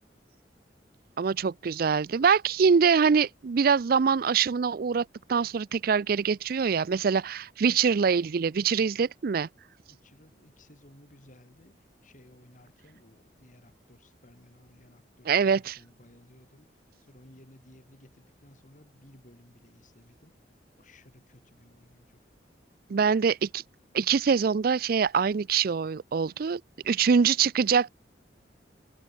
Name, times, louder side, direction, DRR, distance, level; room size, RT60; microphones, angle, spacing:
voice 1, 1.2-9.5 15.3-15.8 22.9-23.6 23.9-27.9, right 6 dB, 55° right, 0.4 m, -24 dB
voice 2, 9.9-20.4 20.8-22.3, left 1 dB, 45° left, 3.8 m, -57 dB
head